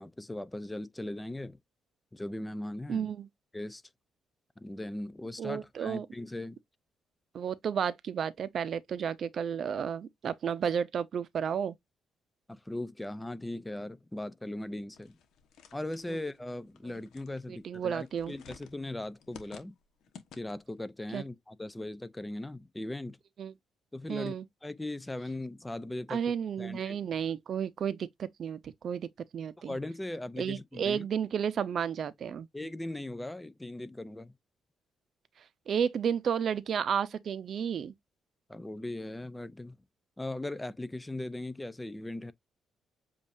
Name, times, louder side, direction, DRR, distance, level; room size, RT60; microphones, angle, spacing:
voice 1, 0.0-1.6 2.1-3.1 3.5-3.8 4.6-6.6 12.5-15.2 15.7-19.8 20.4-23.2 23.9-24.3 24.6-26.2 26.6-27.0 29.6-31.1 32.5-34.3 38.5-39.8 40.2-42.3, left 1 dB, 10° left, 0.5 m, -39 dB
voice 2, 2.9-3.3 5.4-6.1 7.3-11.8 16.1-16.2 17.5-18.3 21.1-21.2 23.4-23.5 24.1-24.4 26.1-29.8 30.4-32.5 35.7-37.9, right 7 dB, 55° right, 0.7 m, -32 dB
sound 1, 14.9-20.8, left 7 dB, 75° left, 1.1 m, -54 dB
7.3 x 2.6 x 2.6 m
cardioid pair, 90°, 0 cm